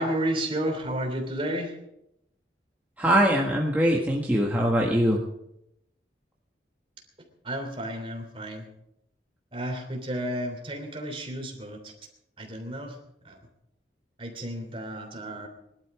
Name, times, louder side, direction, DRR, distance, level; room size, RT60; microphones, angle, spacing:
voice 1, 0.0-1.7 7.4-8.7 9.5-11.9 12.4-13.0 13.2-13.4 14.2-15.5, right 1 dB, 30° right, 3 dB, 3.2 m, -32 dB
voice 2, 3.0-5.2, equal, 10° right, -2 dB, 1.6 m, -22 dB
20.0 x 12.0 x 4.9 m, 0.80 s
head